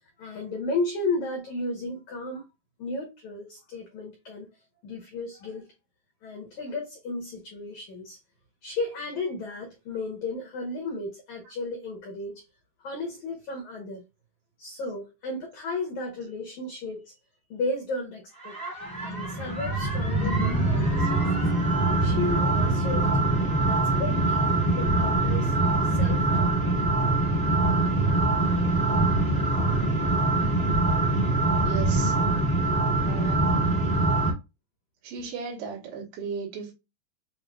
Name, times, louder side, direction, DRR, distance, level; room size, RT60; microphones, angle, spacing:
voice 1, 0.2-2.4 2.8-4.5 4.8-5.7 6.2-8.2 8.6-12.4 12.8-14.0 14.6-17.1 17.5-18.5 19.0-21.5 22.0-23.2 23.6-25.6 25.8-26.7, left 2 dB, 85° left, 1.6 m, -34 dB
sound 1, 18.4-34.3, right 2 dB, 25° right, 0.8 m, -24 dB
voice 2, 31.6-32.2 33.1-33.8 35.0-36.7, right 5 dB, 80° right, 3.6 m, -36 dB
7.4 x 2.5 x 2.3 m
omnidirectional pair, 5.0 m